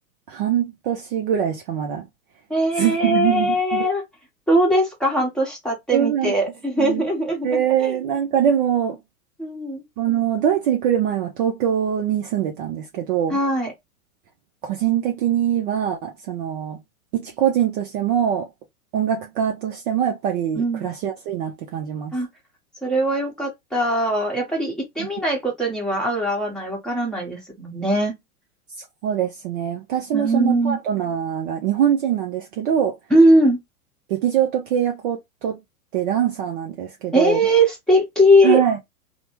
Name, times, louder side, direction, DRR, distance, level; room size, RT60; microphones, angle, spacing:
voice 1, 0.3-2.1 2.8-3.9 5.9-6.3 6.8-7.0 7.4-9.0 10.0-13.4 14.6-16.8 17.1-18.5 18.9-22.1 25.0-25.1 28.8-32.9 34.1-35.6 35.9-37.4 38.4-38.8, right 9 dB, 35° right, 0.6 m, -23 dB
voice 2, 2.5-4.0 4.5-8.0 9.4-9.8 13.3-13.7 20.6-20.9 22.1-22.3 22.8-28.1 30.1-30.8 33.1-33.6 37.1-38.6, equal, ahead, 1.1 m, -20 dB
3.2 x 2.1 x 2.9 m
hypercardioid pair, 105°, 45 cm